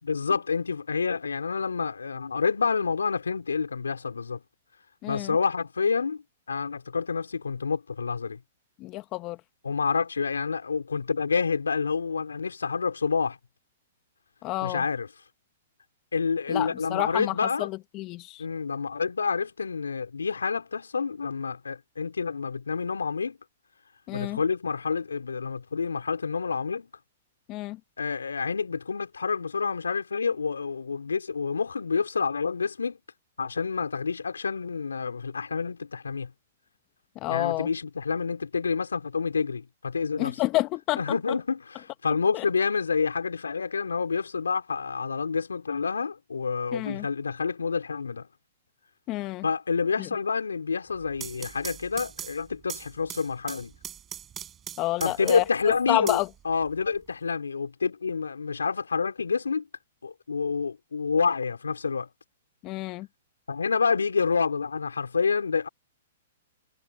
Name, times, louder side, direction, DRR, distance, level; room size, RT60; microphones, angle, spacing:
voice 1, 0.1-4.4 5.1-6.2 6.5-8.4 9.6-13.4 14.6-15.1 16.1-17.7 18.4-23.4 24.1-26.9 28.0-33.0 33.4-36.3 37.3-40.4 41.0-48.3 49.4-53.7 55.0-59.7 60.0-62.1 63.5-65.7, left 5 dB, 90° left, 4.7 m, -28 dB
voice 2, 5.0-5.3 8.8-9.4 14.4-14.8 16.5-18.4 24.1-24.4 27.5-27.8 37.2-37.7 40.2-41.2 42.3-42.4 46.7-47.1 49.1-49.4 50.0-50.1 54.8-55.4 55.9-56.3 62.6-63.1, left 19 dB, 35° left, 1.3 m, -29 dB
sound 1, 51.0-55.6 56.1-57.0, right 10 dB, 25° right, 7.1 m, -40 dB
hypercardioid pair, 120°, 0 cm